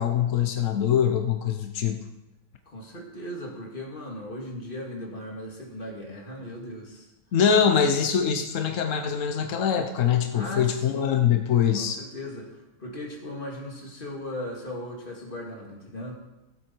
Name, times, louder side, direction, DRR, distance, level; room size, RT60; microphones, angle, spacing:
voice 1, 0.0-2.0 7.3-12.0, left 8 dB, 80° left, 6 dB, 0.7 m, -23 dB
voice 2, 2.7-7.1 10.3-11.3 11.8-16.2, left 1 dB, 25° left, -1 dB, 2.2 m, -38 dB
15.5 x 8.1 x 4.5 m, 1.0 s
omnidirectional pair, 2.4 m